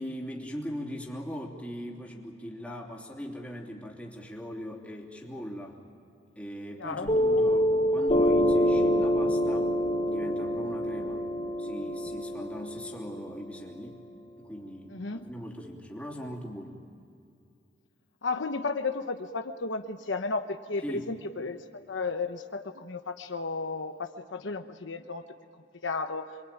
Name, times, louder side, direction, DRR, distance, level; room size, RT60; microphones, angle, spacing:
voice 1, 0.0-5.8 6.4-9.7 10.0-11.3 11.6-14.0 14.4-16.8 20.8-21.2, equal, 5° left, -1 dB, 3.2 m, -40 dB
voice 2, 6.8-7.4 14.9-15.3 18.2-25.2 25.8-26.3, left 3 dB, 70° left, 6 dB, 1.0 m, -34 dB
Piano, 7.1-14.1, equal, 30° left, 1.6 m, -26 dB
27.0 x 23.5 x 9.1 m, 2.5 s
head